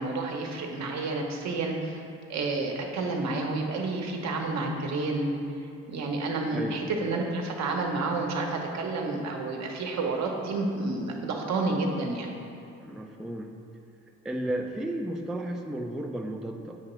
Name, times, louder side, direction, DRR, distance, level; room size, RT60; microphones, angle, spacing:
voice 1, 0.0-2.0 2.3-5.3 5.9-12.3, right 3 dB, 65° right, 1 dB, 0.9 m, -30 dB
voice 2, 12.8-13.5 14.2-16.8, right 1 dB, ahead, 2 dB, 0.3 m, -33 dB
8.0 x 2.9 x 5.5 m, 2.6 s
cardioid pair, 90°, 30 cm